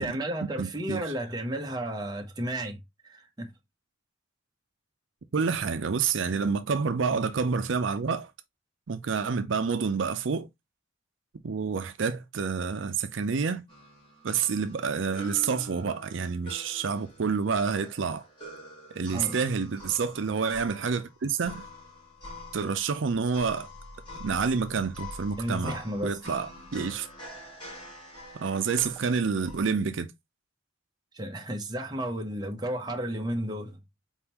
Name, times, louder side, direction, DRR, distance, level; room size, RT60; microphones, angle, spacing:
voice 1, 0.0-3.5 19.1-19.4 25.4-26.2 31.1-33.8, right 1 dB, 20° right, 0.8 m, -33 dB
voice 2, 0.6-1.0 5.3-8.3 8.9-10.5 11.4-13.6 14.2-18.3 18.9-21.7 22.5-23.7 24.2-27.1 28.4-30.1, right 5 dB, 70° right, 0.5 m, -28 dB
sound 1, 13.7-29.7, equal, 25° left, 2.2 m, -46 dB
4.4 x 3.6 x 2.9 m
head